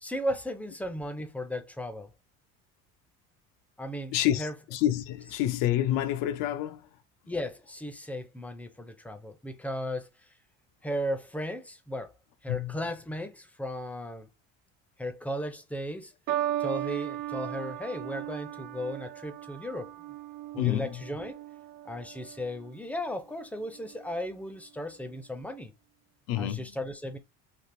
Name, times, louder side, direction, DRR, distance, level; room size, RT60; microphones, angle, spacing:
voice 1, 0.0-2.1 3.8-4.5 7.3-10.1 10.8-12.1 12.4-14.3 15.0-16.1 16.6-19.9 20.5-21.4 21.9-25.7 26.4-27.2, equal, 5° left, 0.5 m, -36 dB
voice 2, 4.1-6.8 12.5-12.8 20.6-21.0 26.3-26.7, left 12 dB, 70° left, 0.5 m, -28 dB
sound 1, 16.3-22.8 23.6-24.0, right 12 dB, 75° right, 0.5 m, -36 dB
3.4 x 2.4 x 2.5 m
cardioid pair, 115°, 34 cm